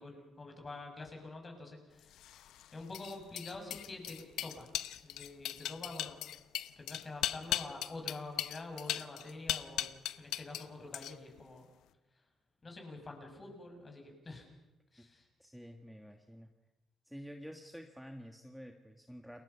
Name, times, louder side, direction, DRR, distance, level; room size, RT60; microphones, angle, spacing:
voice 1, 0.0-4.7 5.0-6.3 6.8-9.9 10.2-11.7 12.6-14.5 14.9-15.3, left 2 dB, 30° left, 3 dB, 6.8 m, -47 dB
sound 1, 2.1-10.7 10.9-11.4, left 12 dB, 85° left, 0.8 m, -38 dB
voice 2, 15.4-16.5 17.0-19.4, equal, ahead, 4 dB, 1.7 m, -49 dB
29.5 x 20.5 x 5.8 m, 1.0 s
cardioid pair, 90°, 0 cm